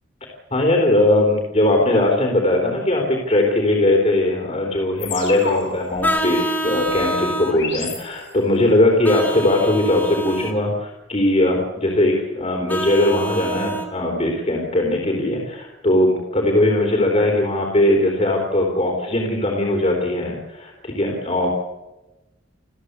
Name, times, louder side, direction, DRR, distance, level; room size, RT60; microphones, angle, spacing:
voice 1, 0.5-21.5, left 1 dB, 35° left, 0 dB, 4.0 m, -19 dB
sound 1, 5.0-8.7, left 5 dB, 75° left, 7.5 m, -33 dB
Vehicle horn car horn honking, 6.0-7.6 9.0-10.5 12.7-13.9, right 1 dB, 10° left, 3.0 m, -26 dB
28.0 x 15.0 x 8.3 m, 1.1 s
head